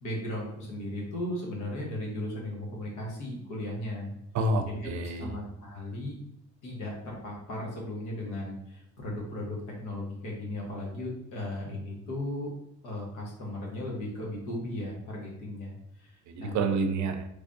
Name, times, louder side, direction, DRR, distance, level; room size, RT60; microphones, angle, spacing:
voice 1, 0.0-4.1 4.7-4.9 5.2-6.2 6.6-12.5 12.8-16.6, left 1 dB, 90° left, -2 dB, 1.2 m, -36 dB
voice 2, 4.3-5.4 16.3-17.3, right 3 dB, 70° right, 7 dB, 0.5 m, -28 dB
3.4 x 3.3 x 2.6 m, 0.80 s
cardioid pair, 90°, 30 cm